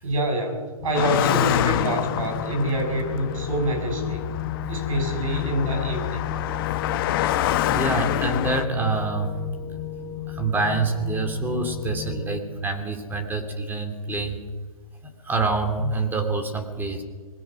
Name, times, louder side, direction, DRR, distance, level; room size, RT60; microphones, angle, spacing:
voice 1, 0.0-4.2 4.7-6.3, right 1 dB, 65° right, 4 dB, 6.9 m, -26 dB
sound 1, 0.8-12.4, left 8 dB, 15° left, 2.1 m, -34 dB
Car passing by, 0.9-8.7, left 13 dB, 40° left, 1.0 m, -27 dB
voice 2, 7.7-9.3 10.3-14.4 15.2-17.0, right 3 dB, 10° right, 5 dB, 3.0 m, -26 dB
25.5 x 21.0 x 6.2 m, 1.4 s
hypercardioid pair, 130°, 19 cm